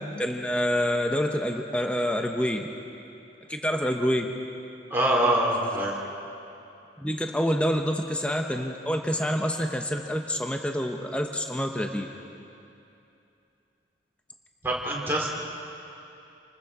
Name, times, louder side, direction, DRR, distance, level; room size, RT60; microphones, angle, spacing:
voice 1, 0.2-2.7 3.5-4.3 7.0-12.1, equal, 5° left, 3 dB, 1.0 m, -27 dB
voice 2, 4.9-5.9 14.6-15.3, right 1 dB, 10° right, -3 dB, 3.5 m, -24 dB
28.5 x 20.5 x 4.9 m, 2.7 s
head